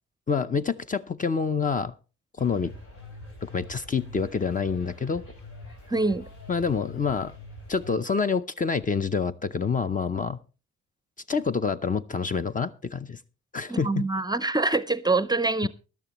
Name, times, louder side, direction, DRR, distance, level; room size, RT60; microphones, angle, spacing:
voice 1, 0.3-1.9 2.4-2.7 3.4-5.2 6.5-7.3 7.7-10.4 11.3-13.2 13.5-14.0 15.6-15.7, left 5 dB, 25° left, 0.6 m, -27 dB
sound 1, 2.4-8.0, left 1 dB, 80° left, 7.3 m, -44 dB
voice 2, 5.9-6.3 13.7-15.7, right 3 dB, 15° right, 0.6 m, -25 dB
17.0 x 12.0 x 3.0 m
cardioid pair, 90°, 30 cm